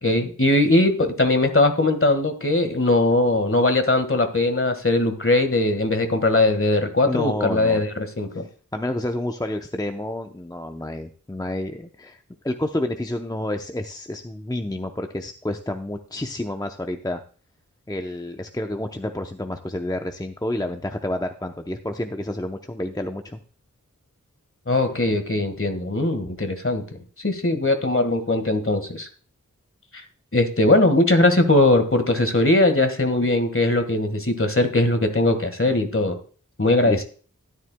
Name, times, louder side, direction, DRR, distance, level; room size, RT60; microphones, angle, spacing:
voice 1, 0.0-8.4 24.7-26.8 27.2-29.1 30.3-36.2 36.6-37.0, left 2 dB, 40° left, 8 dB, 1.6 m, -20 dB
voice 2, 7.1-7.9 8.7-17.2 17.9-23.4 36.8-37.0, left 1 dB, 10° left, 5 dB, 0.7 m, -29 dB
13.0 x 9.9 x 2.2 m, 0.41 s
wide cardioid pair, 50°, 32 cm